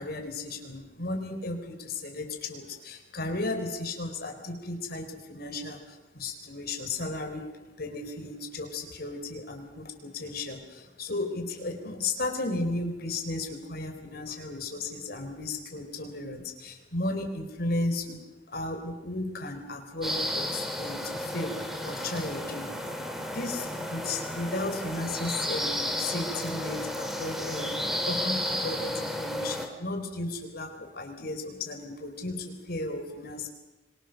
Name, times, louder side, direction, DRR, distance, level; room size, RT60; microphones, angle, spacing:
voice 1, 0.0-7.5 7.8-22.7 23.2-33.5, left 2 dB, 60° left, 4 dB, 4.5 m, -35 dB
sound 1, 20.0-29.7, equal, ahead, 3.2 m, -33 dB
25.5 x 24.5 x 6.7 m, 1.1 s
head